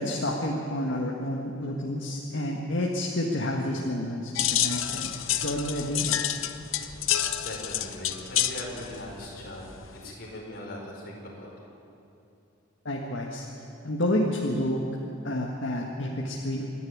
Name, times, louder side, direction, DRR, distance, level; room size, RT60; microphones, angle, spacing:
voice 1, 0.0-5.1 5.4-6.4 12.8-13.5 13.8-14.8 15.2-16.6, left 1 dB, 65° left, -1 dB, 1.7 m, -29 dB
sound 1, 4.4-10.1, left 11 dB, 85° left, 0.9 m, -29 dB
voice 2, 7.4-9.6 10.0-11.7, left 1 dB, 50° left, -2 dB, 5.0 m, -40 dB
27.0 x 11.0 x 9.5 m, 2.7 s
head